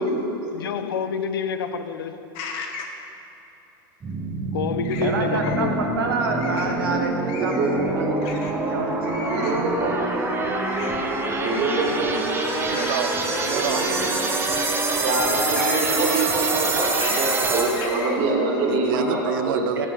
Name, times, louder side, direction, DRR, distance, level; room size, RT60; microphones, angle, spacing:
voice 1, 0.0-2.3 4.5-5.8, left 6 dB, 90° left, 0.4 m, -28 dB
sound 1, 2.3-3.0 4.8-5.6 6.4-6.7 7.3-7.7 8.2-8.5 9.0-9.6 10.7-10.9 11.5-11.9 12.7-13.0 13.3-14.2 15.5-15.9 17.0-17.3 17.8-18.1, left 5 dB, 55° left, 0.8 m, -36 dB
sound 2, 4.0-18.0, right 2 dB, 20° right, 0.7 m, -25 dB
voice 2, 5.0-9.9 15.3-15.4 19.8-19.9, right 3 dB, 90° right, 0.9 m, -29 dB
voice 3, 7.3-8.1 9.3-9.9 11.4-12.2 13.5-14.1 15.0-19.6, right 2 dB, 50° right, 1.4 m, -25 dB
voice 4, 12.5-13.9 18.2-19.9, right 10 dB, 70° right, 0.4 m, -29 dB
6.9 x 5.6 x 4.7 m
hypercardioid pair, 105°, 12 cm